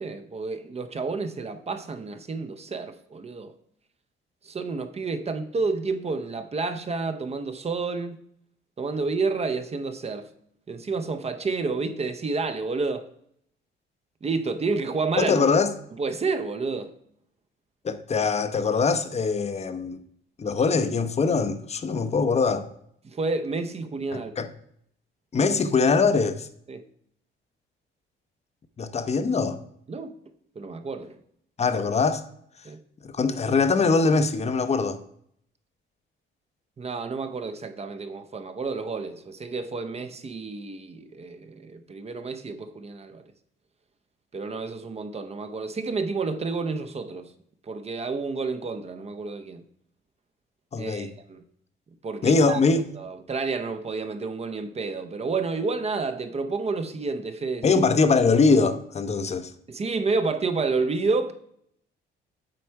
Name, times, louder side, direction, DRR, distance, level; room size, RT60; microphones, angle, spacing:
voice 1, 0.0-3.5 4.4-8.2 8.8-10.3 10.7-13.1 14.2-15.4 16.0-16.9 23.0-24.3 26.7-26.9 29.9-30.1 30.6-31.2 32.6-32.8 36.8-43.2 44.3-47.3 47.6-49.6 50.8-51.4 52.0-52.6 52.9-57.8 59.7-61.3, right 4 dB, 30° right, 0.7 m, -30 dB
voice 2, 15.2-15.7 17.8-20.0 20.4-22.7 24.1-24.5 25.3-26.5 28.8-29.6 31.6-32.2 33.0-35.0 50.7-51.1 52.2-52.8 57.6-59.5, left 4 dB, 35° left, 0.7 m, -22 dB
7.7 x 4.2 x 4.6 m
cardioid pair, 90°, 20 cm